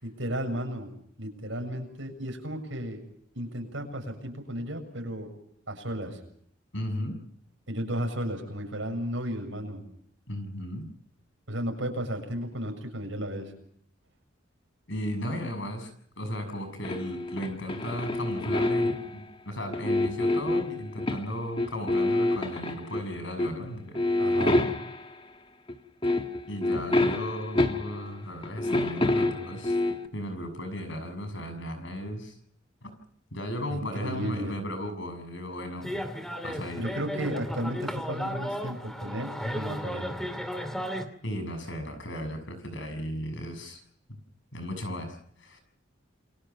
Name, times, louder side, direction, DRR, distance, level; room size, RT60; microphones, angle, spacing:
voice 1, 0.0-0.9 1.2-3.0 3.3-5.3 5.7-6.2 7.7-9.8 11.5-13.5 24.2-24.7 33.7-34.5 36.8-40.1, equal, 70° right, 4 dB, 7.2 m, -34 dB
voice 2, 6.7-7.2 10.3-10.9 14.9-24.0 26.5-29.8 30.1-32.4 32.8-32.9 33.3-35.9 36.4-36.8 41.2-43.8 44.1-44.2 44.5-45.6, equal, 65° left, 8 dB, 6.8 m, -35 dB
sound 1, 16.8-19.2 19.7-21.3 21.6-23.1 23.4-23.6 23.9-25.1 25.7-25.8 26.0-28.1 28.4-30.1, left 2 dB, 25° left, 1.7 m, -27 dB
sound 2, 35.8-41.0, equal, ahead, 2.5 m, -34 dB
29.0 x 23.0 x 5.9 m, 0.66 s
head